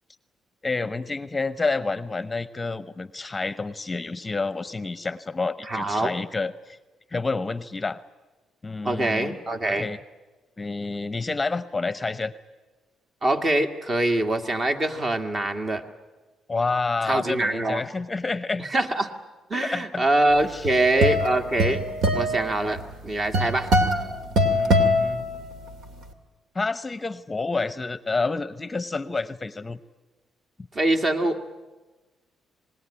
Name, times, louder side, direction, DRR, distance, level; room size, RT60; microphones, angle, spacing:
voice 1, 0.6-6.8 7.1-8.0 8.6-9.4 9.7-10.0 10.6-12.3 16.5-18.7 19.7-20.0 20.4-20.7 24.4-25.2 26.5-29.8, left 3 dB, 20° left, 14 dB, 0.8 m, -29 dB
voice 2, 5.7-6.1 8.8-9.9 13.2-15.8 17.0-17.8 18.6-19.1 19.5-21.8 22.1-23.7 30.7-31.4, right 1 dB, 35° right, 6 dB, 2.0 m, -24 dB
sound 1, 20.4-25.8, equal, 75° right, 2.4 m, -23 dB
26.5 x 20.0 x 10.0 m, 1.2 s
cardioid pair, 90°, 0 cm